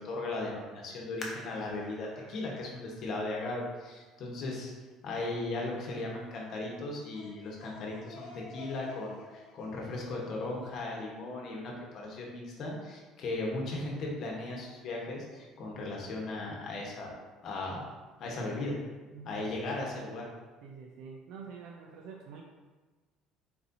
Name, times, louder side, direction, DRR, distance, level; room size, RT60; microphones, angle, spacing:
voice 1, 0.0-4.7 5.0-17.1 17.4-17.8 18.2-18.7 19.2-20.2, left 2 dB, 50° left, -2 dB, 1.1 m, -37 dB
sound 1, 1.2-4.6 5.2-5.3 5.9-6.3 6.7-6.8, left 1 dB, 25° left, 0.8 m, -48 dB
sound 2, 7.1-11.6, left 3 dB, 90° left, 1.0 m, -51 dB
voice 2, 19.1-19.8 20.6-22.4, right 6 dB, 80° right, 1 dB, 0.5 m, -47 dB
4.3 x 4.1 x 2.7 m, 1.3 s
cardioid pair, 125°, 0 cm